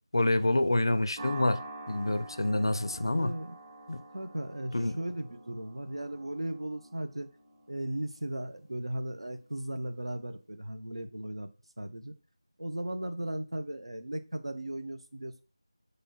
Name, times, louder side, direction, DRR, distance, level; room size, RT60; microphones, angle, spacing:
voice 1, 0.1-1.6 1.9-3.3 3.9-4.0 4.7-5.0, left 2 dB, 55° left, 0.4 m, -27 dB
sound 1, 1.2-9.7, right 2 dB, 30° right, 2.0 m, -48 dB
voice 2, 3.1-3.5 4.1-7.3 7.7-11.5 11.8-12.1 12.6-15.4, right 1 dB, 75° right, 0.7 m, -37 dB
4.2 x 3.2 x 2.9 m
figure-of-eight pair, 170°, 3 cm